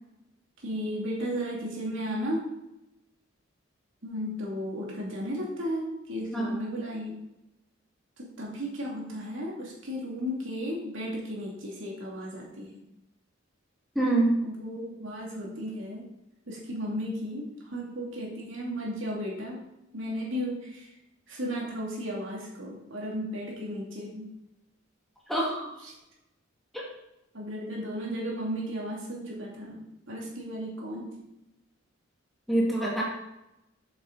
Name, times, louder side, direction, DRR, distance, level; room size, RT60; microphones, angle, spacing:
voice 1, 0.6-2.5 4.0-7.1 8.2-12.8 14.4-16.1 16.5-19.7 19.9-20.9 21.3-24.3 25.8-25.9 27.3-31.1, equal, 75° right, -3 dB, 2.6 m, -34 dB
voice 2, 14.0-14.3 25.3-25.7 32.5-33.0, right 2 dB, ahead, -5 dB, 2.1 m, -25 dB
8.3 x 6.4 x 4.0 m, 0.90 s
head